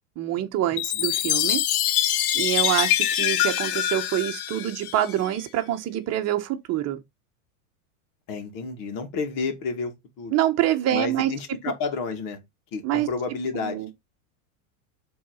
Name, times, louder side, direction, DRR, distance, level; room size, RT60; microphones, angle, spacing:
voice 1, 0.2-1.6 2.3-7.0 10.3-11.3 12.8-13.1 13.5-13.9, right 12 dB, 35° right, 1.2 m, -26 dB
Chime, 0.8-5.3, left 12 dB, 85° left, 1.0 m, -24 dB
voice 2, 8.3-10.3 10.9-12.4 12.7-13.8, left 4 dB, 50° left, 2.5 m, -31 dB
7.5 x 4.0 x 5.6 m
supercardioid pair, 140°, 43 cm